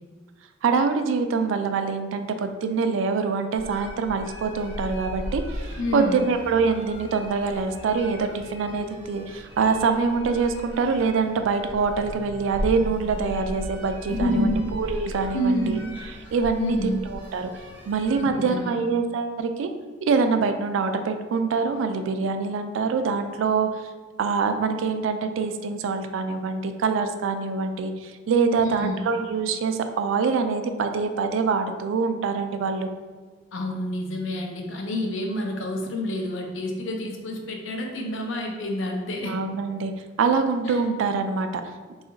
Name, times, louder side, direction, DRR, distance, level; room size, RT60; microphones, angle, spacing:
voice 1, 0.6-14.5 14.8-15.6 16.3-17.5 17.9-19.7 20.0-23.8 24.2-32.9 39.3-39.9 40.2-41.5, right 5 dB, 80° right, 7 dB, 0.3 m, -25 dB
sound 1, 3.5-18.2, equal, 10° right, 0.8 m, -37 dB
voice 2, 5.8-6.3 14.1-14.7 15.3-15.9 16.6-17.1 18.2-18.8 28.6-29.1 33.5-39.4 40.7-40.8, left 1 dB, 80° left, 2 dB, 0.5 m, -28 dB
2.8 x 2.4 x 3.8 m, 1.4 s
head